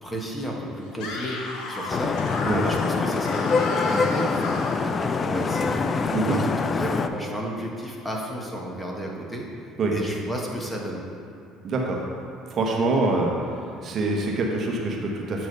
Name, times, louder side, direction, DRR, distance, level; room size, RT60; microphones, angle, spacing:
voice 1, 0.0-1.4 1.7-9.5 9.9-11.0, equal, 10° left, -2 dB, 1.3 m, -33 dB
Screaming, 0.9-4.9, left 3 dB, 70° left, 0.9 m, -33 dB
Vehicle horn car horn honking / Traffic noise roadway noise, 1.9-7.1, left 4 dB, 35° left, 0.3 m, -25 dB
voice 2, 11.6-12.0 12.5-13.3 13.8-15.5, right 3 dB, 50° right, -1 dB, 1.1 m, -24 dB
8.2 x 3.0 x 5.4 m, 2.6 s
supercardioid pair, 75°, 0 cm